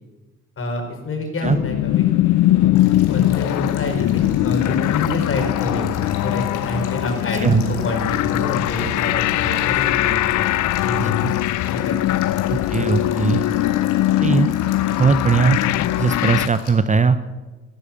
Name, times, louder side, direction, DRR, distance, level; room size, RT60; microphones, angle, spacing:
voice 1, 0.6-2.7 3.1-10.4 10.8-11.4 11.7-11.9, left 2 dB, 45° left, 3 dB, 4.4 m, -27 dB
sound 1, 1.4-16.5, left 15 dB, 70° left, 0.5 m, -21 dB
Male speech man speaking / Stream / Trickle dribble, 2.7-16.7, left 6 dB, 85° left, 2.7 m, -38 dB
voice 2, 11.0-11.3 12.5-13.4 14.2-14.5 14.9-15.6 16.0-17.2, right 5 dB, 25° right, 12 dB, 0.7 m, -19 dB
14.0 x 12.0 x 7.1 m, 1.2 s
cardioid pair, 90°, 30 cm